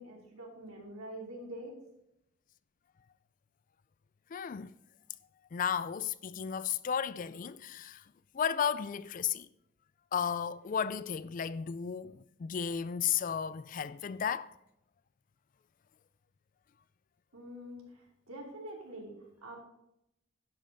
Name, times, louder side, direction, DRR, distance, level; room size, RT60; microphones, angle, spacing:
voice 1, 0.0-1.8 17.3-19.2 19.4-19.6, right 1 dB, 90° right, 2.8 m, -45 dB
voice 2, 4.3-4.8 5.5-8.0 8.3-9.5 10.1-14.6, left 8 dB, 40° left, 0.3 m, -34 dB
11.5 x 5.6 x 5.2 m
head